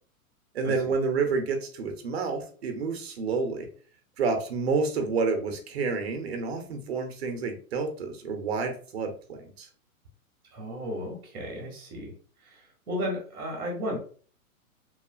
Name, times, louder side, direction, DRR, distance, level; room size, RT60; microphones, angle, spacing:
voice 1, 0.5-3.7 4.2-9.7, right 4 dB, 45° right, 5 dB, 0.6 m, -29 dB
voice 2, 10.5-12.1 12.4-14.0, equal, 5° right, -20 dB, 0.4 m, -34 dB
3.0 x 2.3 x 2.3 m, 0.42 s
hypercardioid pair, 165°, 43 cm